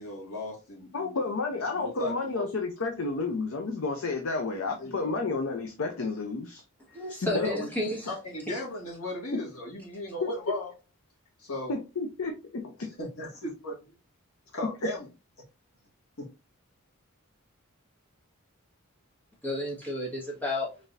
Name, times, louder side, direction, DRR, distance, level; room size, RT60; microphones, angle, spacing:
voice 1, 0.0-1.2 1.5-2.5 4.8-5.2 7.4-7.7 8.1-10.7 11.4-11.8 13.0-13.8 14.5-15.1, left 1 dB, 85° left, 2.0 m, -36 dB
voice 2, 0.9-6.6 7.1-7.5 9.3-9.4 10.2-10.3 11.7-12.9, left 3 dB, 65° left, 0.7 m, -31 dB
voice 3, 6.9-8.1 19.4-20.7, left 1 dB, 10° left, 1.5 m, -32 dB
4.1 x 3.7 x 2.6 m
head